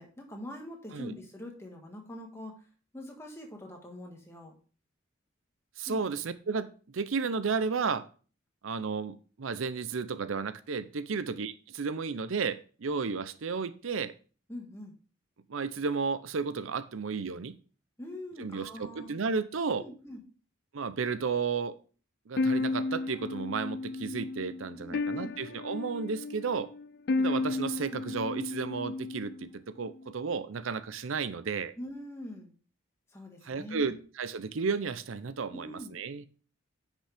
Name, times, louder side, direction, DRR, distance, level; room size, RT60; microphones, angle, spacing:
voice 1, 0.0-2.6 2.9-4.5 5.9-6.0 14.5-14.9 18.0-19.1 19.8-20.2 24.8-25.3 27.9-28.2 31.8-32.5 33.1-33.9 35.5-35.9, left 1 dB, 15° left, 2 dB, 1.6 m, -43 dB
voice 2, 5.8-8.0 8.6-14.1 15.5-17.5 18.4-19.9 20.7-21.7 22.3-26.7 27.2-31.7 33.4-36.3, right 5 dB, 80° right, 14 dB, 0.6 m, -33 dB
sound 1, 22.4-29.5, left 3 dB, 50° left, 0.4 m, -33 dB
10.0 x 6.0 x 3.4 m, 0.39 s
head